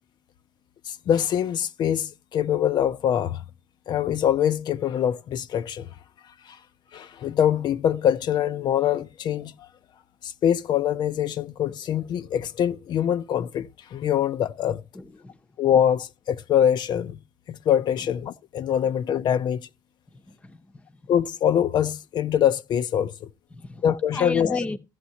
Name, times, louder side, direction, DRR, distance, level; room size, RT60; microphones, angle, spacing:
voice 1, 0.9-3.4 3.9-5.9 6.4-6.6 6.9-9.7 10.2-14.8 15.6-17.2 17.5-19.7 21.1-23.3 23.8-24.6, left 9 dB, 70° left, 0.5 m, -24 dB
voice 2, 14.9-15.4 20.3-20.6 20.9-21.1 23.5-23.8 24.1-24.8, left 2 dB, 15° left, 0.6 m, -33 dB
16.0 x 7.2 x 2.8 m
wide cardioid pair, 175°, 8 cm